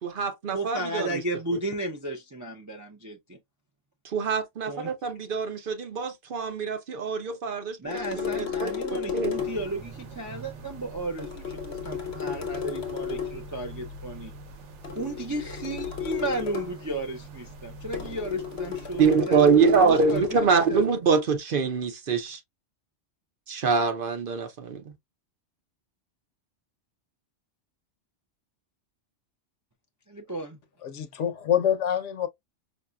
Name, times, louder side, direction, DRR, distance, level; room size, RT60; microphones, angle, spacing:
voice 1, 0.0-1.2 4.0-8.7 9.1-9.3 19.0-22.4 23.5-24.9, right 5 dB, 55° right, 0.7 m, -24 dB
voice 2, 0.5-3.4 4.7-4.9 7.8-14.3 14.9-20.2 20.7-20.8 30.1-30.6, right 1 dB, 30° right, 0.4 m, -34 dB
sound 1, 7.9-9.8 11.2-13.5 14.8-16.8 17.9-20.4, left 8 dB, 60° left, 1.2 m, -33 dB
sound 2, 9.4-19.1, right 1 dB, 75° right, 1.1 m, -44 dB
voice 3, 30.8-32.3, left 9 dB, 85° left, 1.0 m, -26 dB
5.2 x 2.6 x 2.2 m
omnidirectional pair, 1.2 m